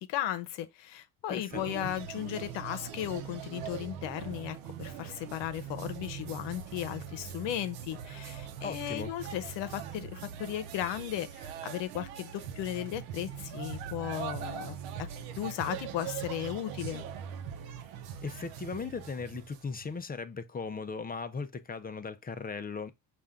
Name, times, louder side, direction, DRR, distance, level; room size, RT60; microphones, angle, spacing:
voice 1, 0.0-15.1 15.4-17.0, left 12 dB, 70° left, 0.9 m, -36 dB
voice 2, 1.3-1.9 8.6-9.1 18.2-22.9, left 5 dB, 20° left, 0.6 m, -38 dB
sound 1, 1.5-20.0, right 8 dB, 85° right, 0.9 m, -41 dB
5.5 x 2.6 x 3.6 m
supercardioid pair, 85°, 44 cm